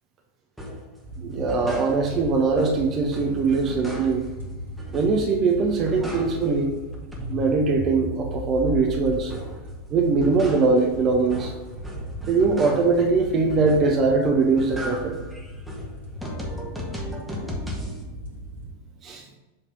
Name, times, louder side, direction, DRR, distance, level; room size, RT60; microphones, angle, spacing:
sound 1, 0.6-0.9 1.3-2.3 2.6-4.4 4.8-5.4 5.7-6.6 6.9-9.7 10.0-13.1 13.5-14.1 14.4-18.0, left 1 dB, ahead, 1.3 m, -36 dB
sound 2, 1.0-18.7, equal, 65° right, 1.6 m, -39 dB
voice 1, 1.2-4.2 4.9-6.8 7.3-9.3 9.9-11.5 12.3-15.2 19.0-19.2, right 4 dB, 30° right, 1 dB, 0.8 m, -21 dB
7.5 x 3.3 x 5.4 m, 1.1 s
figure-of-eight pair, 90°, 0 cm